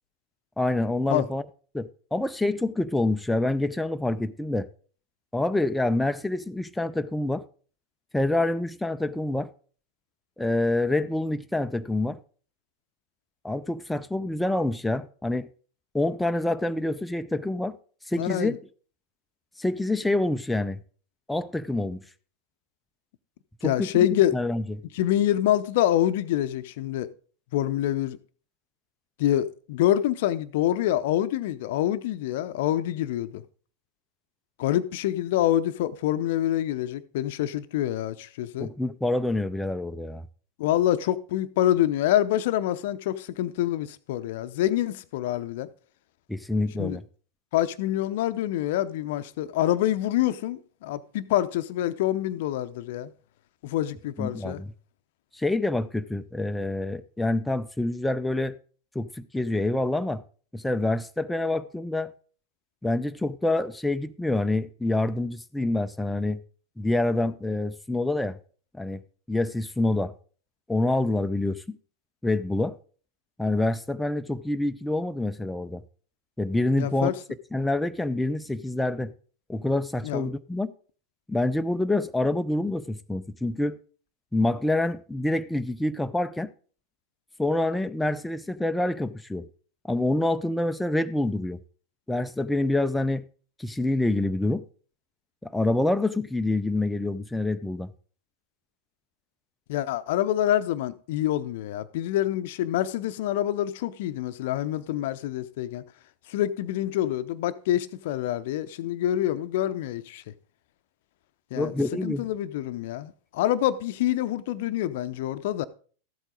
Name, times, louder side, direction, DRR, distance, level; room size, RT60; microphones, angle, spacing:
voice 1, 0.6-1.4 1.7-4.7 5.3-7.4 8.1-9.5 10.4-12.2 13.4-15.5 15.9-17.8 18.1-18.5 19.6-20.8 21.3-22.0 23.6-24.1 24.3-24.6 38.6-40.2 46.3-47.0 54.2-54.7 55.3-58.6 58.9-60.2 60.5-62.1 62.8-66.4 66.8-68.4 68.7-69.0 69.3-70.1 70.7-71.8 72.2-72.8 73.4-75.8 76.4-77.1 77.5-79.1 79.5-80.7 81.3-83.8 84.3-86.5 87.4-89.5 89.9-91.6 92.1-93.2 93.6-94.6 95.4-97.9 111.5-112.3, left 2 dB, 5° left, 0.5 m, -26 dB
voice 2, 18.2-18.6 23.6-24.3 24.9-27.1 27.5-28.2 29.2-33.4 34.6-38.7 40.6-45.7 46.8-47.0 47.5-53.1 53.6-54.6 76.8-77.1 80.0-80.3 99.7-105.8 106.3-110.2 111.5-111.7 112.0-115.7, left 12 dB, 50° left, 0.6 m, -26 dB
13.5 x 8.1 x 3.8 m
figure-of-eight pair, 90°, 0 cm